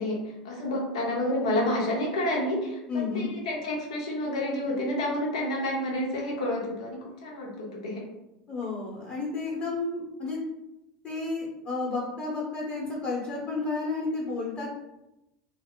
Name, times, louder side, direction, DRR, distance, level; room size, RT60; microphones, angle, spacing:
voice 1, 0.0-8.0, left 1 dB, 80° left, -1 dB, 0.7 m, -29 dB
voice 2, 2.9-3.3 8.5-10.4 11.0-14.7, left 3 dB, 45° left, -4 dB, 0.9 m, -31 dB
2.0 x 2.0 x 3.5 m, 0.92 s
hypercardioid pair, 90°, 3 cm